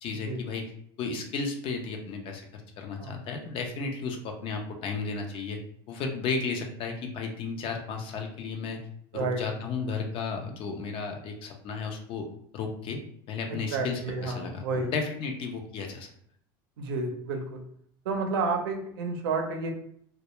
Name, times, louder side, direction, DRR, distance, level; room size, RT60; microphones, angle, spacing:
voice 1, 0.0-0.7 1.0-2.5 2.8-5.6 5.9-8.8 9.1-12.3 12.5-13.0 13.3-16.1, left 4 dB, 50° left, 3 dB, 0.5 m, -33 dB
voice 2, 13.5-14.9 16.8-17.6 18.0-19.7, right 3 dB, 85° right, 3 dB, 0.5 m, -30 dB
2.2 x 2.1 x 2.9 m, 0.67 s
supercardioid pair, 105°, 12 cm